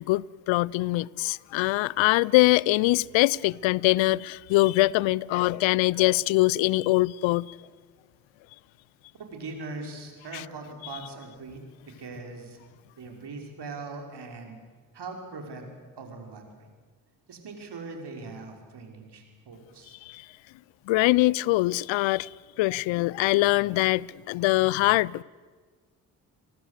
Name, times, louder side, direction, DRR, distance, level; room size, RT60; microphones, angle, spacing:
voice 1, 0.0-7.5 10.3-10.4 20.1-20.2 20.9-22.3 22.6-25.2, left 19 dB, 75° left, 0.6 m, -23 dB
voice 2, 9.2-12.6 13.0-14.6 14.9-15.7 16.0-16.7 17.3-20.0, right 3 dB, 60° right, 5.5 m, -41 dB
29.0 x 18.0 x 8.3 m
hypercardioid pair, 45°, 46 cm